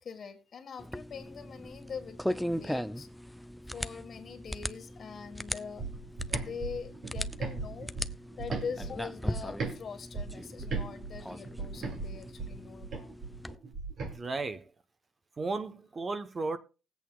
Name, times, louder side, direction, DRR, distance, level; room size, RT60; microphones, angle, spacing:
voice 1, 0.0-3.1 3.7-5.9 6.3-7.9 8.4-13.1, left 6 dB, 55° left, 1.5 m, -43 dB
sound 1, 0.8-13.5, equal, ahead, 0.4 m, -39 dB
sound 2, 5.8-9.8 10.1-14.1, right 4 dB, 75° right, 2.4 m, -38 dB
voice 2, 14.0-14.7 15.4-16.6, right 3 dB, 35° right, 0.9 m, -35 dB
19.5 x 8.2 x 2.3 m
cardioid pair, 100°, 0 cm